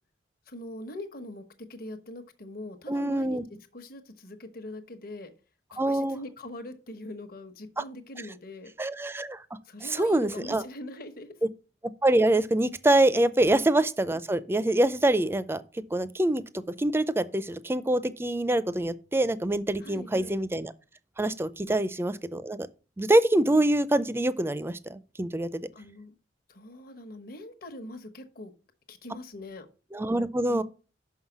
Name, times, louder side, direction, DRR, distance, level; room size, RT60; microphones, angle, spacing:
voice 1, 0.5-3.4 3.7-5.3 5.7-8.7 9.6-11.4 19.8-20.4 21.7-21.8 25.7-26.2 26.5-28.5 28.9-29.7 30.5-30.6, left 1 dB, 55° left, 1.1 m, -42 dB
voice 2, 2.9-3.4 5.8-6.2 7.8-7.9 8.8-9.4 9.8-10.6 12.0-15.6 15.9-20.7 21.2-22.7 23.0-25.6 29.9-30.6, right 1 dB, 15° right, 0.4 m, -25 dB
5.8 x 5.6 x 5.9 m
head